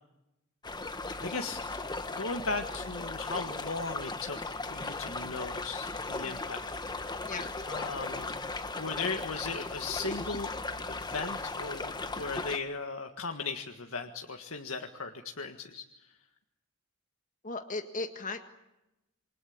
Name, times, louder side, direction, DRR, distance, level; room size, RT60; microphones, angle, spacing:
sound 1, 0.6-12.6, left 3 dB, 20° left, 1.4 m, -37 dB
voice 1, 1.2-1.6 2.1-4.4 4.7-6.7 7.7-8.4 8.8-10.5 10.9-15.8, left 4 dB, 80° left, 4 dB, 1.7 m, -37 dB
voice 2, 17.4-18.4, left 3 dB, 40° left, 5 dB, 1.8 m, -37 dB
28.5 x 24.0 x 8.7 m, 0.94 s
head